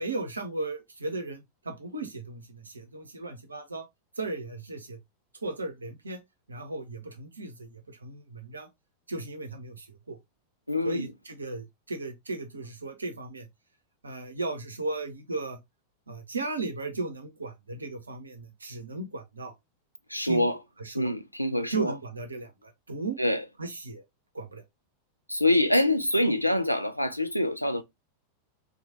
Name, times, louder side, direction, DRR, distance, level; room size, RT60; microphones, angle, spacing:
voice 1, 0.0-3.9 4.2-5.0 5.4-6.2 6.5-8.7 9.1-10.2 10.8-13.5 14.0-15.6 16.1-19.5 20.2-20.5 20.8-21.1 21.7-23.2 23.6-24.0 24.3-24.6, right 3 dB, 75° right, 0.6 m, -36 dB
voice 2, 10.7-11.1 20.1-20.6 20.9-21.9 23.2-23.4 25.3-27.8, left 1 dB, 90° left, 0.3 m, -25 dB
2.9 x 2.2 x 2.8 m
figure-of-eight pair, 90°, 0 cm